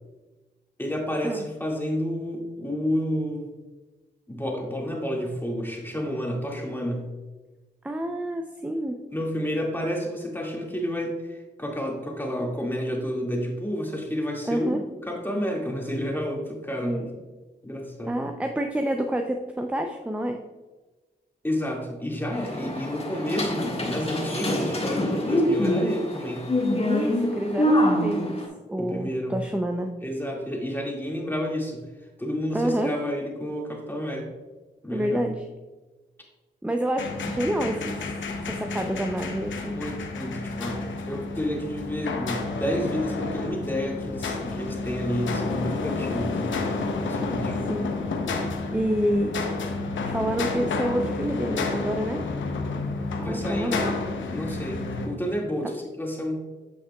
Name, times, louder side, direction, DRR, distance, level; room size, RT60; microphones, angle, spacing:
voice 1, 0.8-3.5 4.3-7.1 9.1-17.1 17.6-18.2 21.4-26.4 28.8-29.4 30.0-34.3 34.8-35.3 39.7-46.8 47.0-47.6 53.2-53.9 54.3-56.4, equal, 10° left, -1 dB, 2.0 m, -30 dB
voice 2, 7.8-9.0 14.5-14.8 16.8-17.1 18.1-20.4 26.8-28.4 28.7-29.9 32.5-33.0 34.9-35.4 36.6-38.0 38.5-39.8 47.7-48.0 48.7-49.3 50.1-52.2 53.3-53.9, right 1 dB, 5° right, 4 dB, 0.5 m, -28 dB
sound 1, 22.3-28.5, left 1 dB, 30° left, 1.7 m, -25 dB
sound 2, 37.0-55.1, left 3 dB, 75° left, 0.8 m, -30 dB
8.4 x 5.8 x 2.3 m, 1.2 s
supercardioid pair, 45°, 20 cm